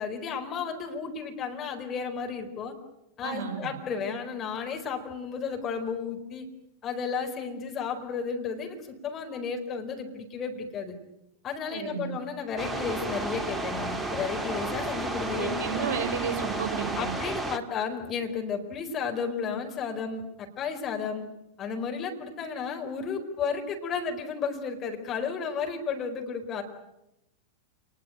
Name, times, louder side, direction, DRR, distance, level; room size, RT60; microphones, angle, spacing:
voice 1, 0.0-2.7 3.2-6.5 6.8-10.9 11.4-15.9 17.0-21.3 21.6-26.6, left 6 dB, 30° left, 4 dB, 4.4 m, -33 dB
voice 2, 3.2-3.7 11.7-12.2 15.3-17.1, right 7 dB, 50° right, 5 dB, 6.5 m, -32 dB
sound 1, 12.6-17.6, right 2 dB, 10° right, 2.0 m, -32 dB
28.0 x 21.0 x 9.4 m, 0.89 s
figure-of-eight pair, 90°, 0 cm